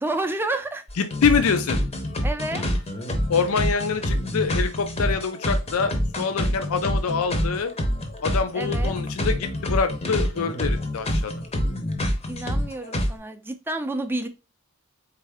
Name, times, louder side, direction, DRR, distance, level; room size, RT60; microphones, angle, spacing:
voice 1, 0.0-0.8 2.2-2.7 8.5-8.9 12.3-14.3, right 2 dB, 10° right, 7 dB, 0.4 m, -29 dB
sound 1, 0.9-13.1, equal, 30° left, 0.7 m, -26 dB
voice 2, 1.0-1.8 3.3-7.7 8.2-11.3, left 5 dB, 80° left, 8 dB, 0.5 m, -25 dB
4.2 x 3.3 x 3.4 m, 0.30 s
head